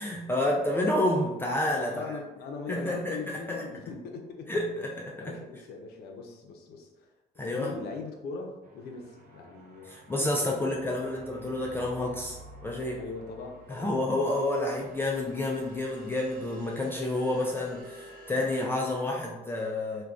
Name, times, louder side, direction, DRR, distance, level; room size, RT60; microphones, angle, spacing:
voice 1, 0.0-2.2 2.7-3.6 4.5-5.4 7.4-7.7 9.8-13.0 13.7-20.0, left 1 dB, 15° left, -2 dB, 0.3 m, -29 dB
voice 2, 1.9-4.5 5.2-7.1 7.4-10.5 12.9-14.0, left 4 dB, 70° left, 2 dB, 0.6 m, -40 dB
sound 1, 8.6-19.1, right 1 dB, 55° right, 0.5 m, -50 dB
3.4 x 2.2 x 2.4 m, 1.0 s
cardioid pair, 110°, 17 cm